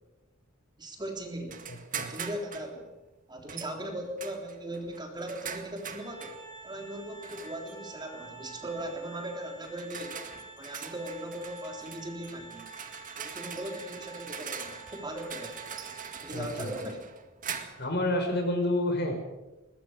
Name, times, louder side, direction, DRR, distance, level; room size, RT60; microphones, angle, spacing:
voice 1, 0.8-1.7 2.1-3.0 3.3-6.4 6.6-10.2 10.6-12.7 13.2-15.6 16.2-17.1, right 1 dB, 20° right, 2 dB, 3.6 m, -39 dB
sound 1, 1.5-2.7 3.5-3.8 4.2-6.4 7.2-7.8 8.8-9.0 9.6-17.9, right 7 dB, 40° right, 2.1 m, -42 dB
voice 2, 1.7-2.1 16.3-16.7 17.8-19.1, left 1 dB, 55° left, 4 dB, 5.5 m, -29 dB
Organ, 5.9-16.6, right 4 dB, 20° left, 6.6 m, -48 dB
22.0 x 20.0 x 6.5 m, 1.0 s
head